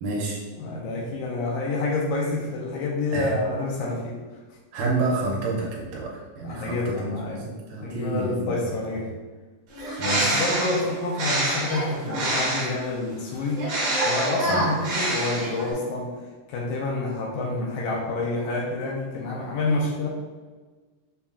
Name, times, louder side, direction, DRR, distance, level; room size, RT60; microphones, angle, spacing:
voice 1, 0.0-0.4 3.1-3.4 4.7-7.4 7.7-8.6 10.0-10.4 14.5-14.6, right 2 dB, 85° right, -2 dB, 2.2 m, -29 dB
voice 2, 0.6-4.2 6.4-7.4 7.8-9.1 10.1-13.6 14.1-16.1 16.5-20.1, left 2 dB, 80° left, -2 dB, 1.8 m, -28 dB
Bird, 9.7-12.8 13.6-15.7, right 1 dB, 55° right, 1.5 m, -26 dB
5.5 x 2.3 x 2.4 m, 1.4 s
omnidirectional pair, 3.7 m